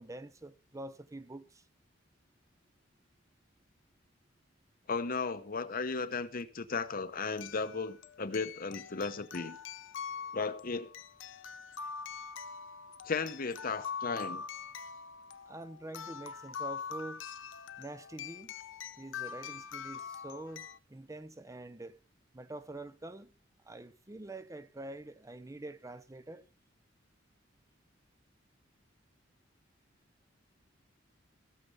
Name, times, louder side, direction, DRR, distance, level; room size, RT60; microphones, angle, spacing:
voice 1, 0.0-1.6 15.5-17.2 17.8-18.5 19.0-22.0 22.3-23.3 23.7-26.4, right 2 dB, 15° right, 0.6 m, -46 dB
voice 2, 4.9-9.6 10.3-10.9 13.1-14.4, left 4 dB, 50° left, 0.9 m, -35 dB
sound 1, 5.9-6.0 7.4-20.8, left 6 dB, 75° left, 0.7 m, -44 dB
16.5 x 6.8 x 5.4 m
head